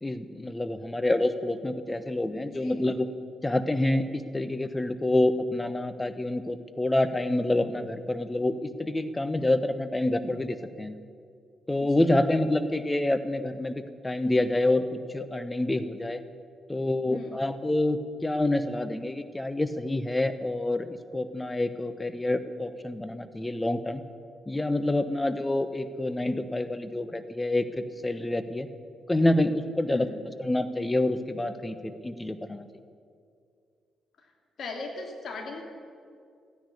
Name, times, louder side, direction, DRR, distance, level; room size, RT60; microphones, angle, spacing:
voice 1, 0.0-3.1 3.4-11.0 11.7-16.2 16.7-24.0 24.5-28.7 29.1-30.1 30.4-32.7, left 1 dB, 20° left, 11 dB, 1.1 m, -27 dB
voice 2, 2.5-2.8 11.8-12.1 17.0-17.4 29.9-30.2 34.2-34.3 34.6-35.6, left 3 dB, 60° left, 2 dB, 2.6 m, -39 dB
14.0 x 10.5 x 8.4 m, 2.3 s
hypercardioid pair, 45°, 0 cm